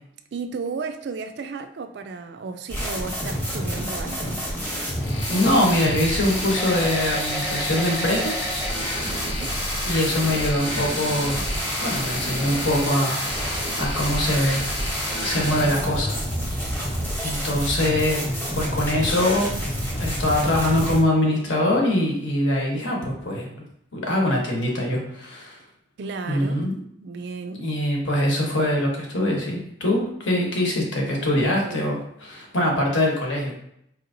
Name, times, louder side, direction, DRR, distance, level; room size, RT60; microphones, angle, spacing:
voice 1, 0.3-4.4 9.0-9.5 26.0-26.6 27.0-27.7 31.2-31.8 32.7-32.8, right 4 dB, 55° right, 0.3 m, -34 dB
sound 1, 2.7-21.0, equal, 10° left, 0.8 m, -28 dB
sound 2, 5.0-15.7, left 2 dB, 45° left, 0.7 m, -34 dB
voice 2, 5.3-8.3 9.9-11.4 11.8-14.6 15.2-16.2 17.2-18.2 18.5-19.6 20.0-23.5 23.9-25.6 26.3-26.8 27.6-33.6, left 1 dB, 70° left, 1.0 m, -23 dB
4.5 x 2.8 x 2.6 m
head